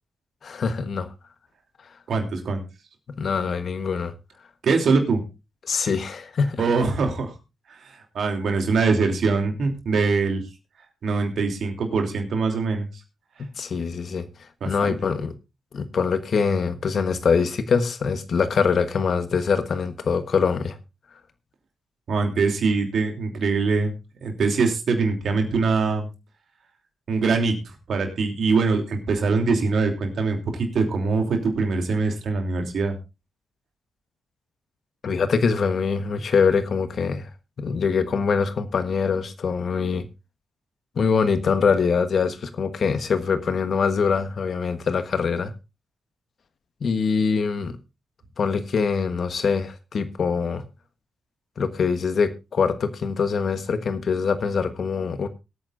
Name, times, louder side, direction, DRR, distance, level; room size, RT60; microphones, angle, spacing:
voice 1, 0.4-1.1 3.1-4.1 5.6-6.6 13.4-14.3 14.7-15.3 15.7-20.8 35.0-37.3 37.6-40.0 41.0-45.5 46.8-47.8 48.4-50.6 51.6-55.3, left 5 dB, 65° left, 1.2 m, -23 dB
voice 2, 2.1-2.6 4.6-5.2 6.6-7.3 7.7-10.4 11.0-12.9 14.6-14.9 22.1-23.9 24.2-26.1 27.1-33.0, right 4 dB, 70° right, 3.0 m, -23 dB
22.0 x 8.9 x 2.6 m
supercardioid pair, 45°, 0 cm